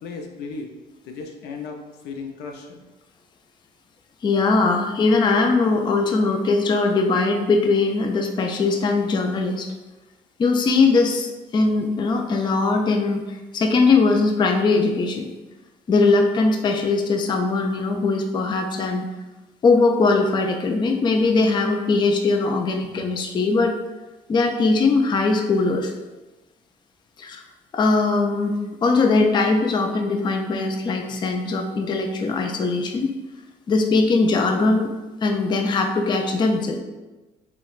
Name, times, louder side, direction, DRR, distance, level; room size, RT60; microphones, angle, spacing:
voice 1, 0.0-0.7 1.0-1.8 2.0-2.8, left 4 dB, 80° left, 4 dB, 0.6 m, -35 dB
voice 2, 4.2-9.7 10.4-15.3 15.9-19.1 19.6-23.7 24.3-25.9 27.2-27.4 27.7-33.1 33.7-34.9 35.2-36.8, left 3 dB, 25° left, 4 dB, 0.3 m, -20 dB
5.7 x 2.1 x 2.4 m, 1.1 s
cardioid pair, 110°, 17 cm